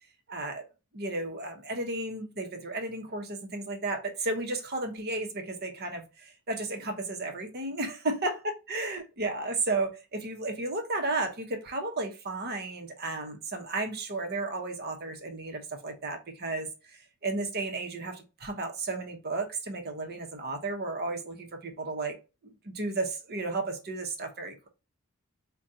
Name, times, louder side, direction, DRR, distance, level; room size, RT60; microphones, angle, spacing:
voice 1, 0.3-0.6 0.9-22.2 22.6-24.7, right 2 dB, 45° right, 0.8 m, -33 dB
4.9 x 2.3 x 2.7 m
head